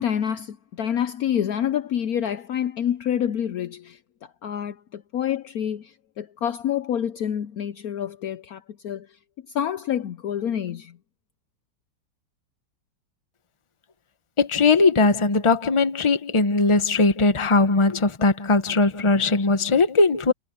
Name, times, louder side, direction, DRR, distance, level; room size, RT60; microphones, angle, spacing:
voice 1, 0.0-4.0 4.4-9.1 9.5-11.0, left 9 dB, 65° left, 1.0 m, -27 dB
voice 2, 14.4-20.3, left 3 dB, 20° left, 1.0 m, -19 dB
omnidirectional pair, 1.9 m